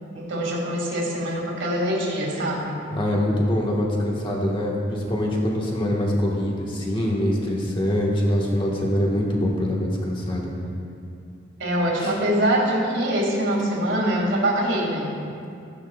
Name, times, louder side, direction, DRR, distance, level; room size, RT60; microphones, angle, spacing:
voice 1, 0.1-2.8 11.6-15.2, right 1 dB, 65° right, -2 dB, 2.1 m, -24 dB
voice 2, 2.9-10.5 12.0-12.1, left 1 dB, 25° left, -2 dB, 1.4 m, -24 dB
14.5 x 10.0 x 2.3 m, 2.5 s
head